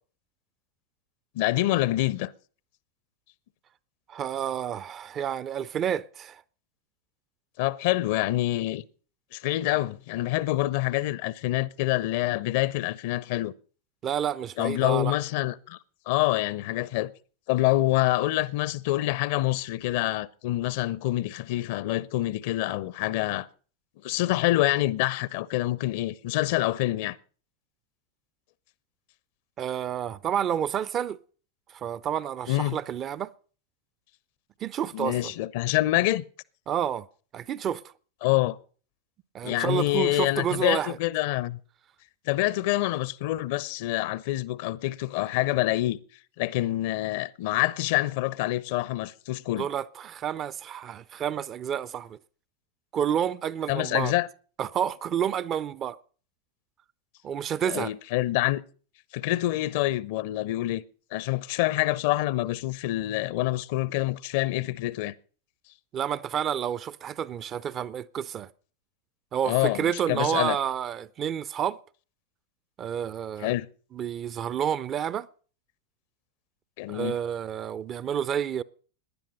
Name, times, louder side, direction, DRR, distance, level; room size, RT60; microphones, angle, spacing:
voice 1, 1.3-2.3 7.6-8.8 9.3-13.5 14.6-15.8 16.1-17.1 17.5-23.5 24.0-27.2 32.5-32.8 34.9-36.2 38.2-38.6 39.4-41.6 42.3-46.0 46.4-49.7 53.7-54.3 57.7-58.6 59.1-60.8 61.1-65.1 69.4-70.6 73.4-73.7 76.8-77.2, left 17 dB, 50° left, 0.7 m, -26 dB
voice 2, 4.1-6.4 14.0-15.1 29.6-31.2 31.7-33.3 34.6-35.3 36.7-37.1 37.3-37.8 39.3-41.0 49.6-52.2 52.9-54.1 54.6-56.0 57.2-57.9 65.9-68.5 69.3-71.8 72.8-73.5 73.9-75.3 76.9-78.6, right 9 dB, 30° right, 0.6 m, -29 dB
18.5 x 10.5 x 5.4 m
figure-of-eight pair, 90°, 0 cm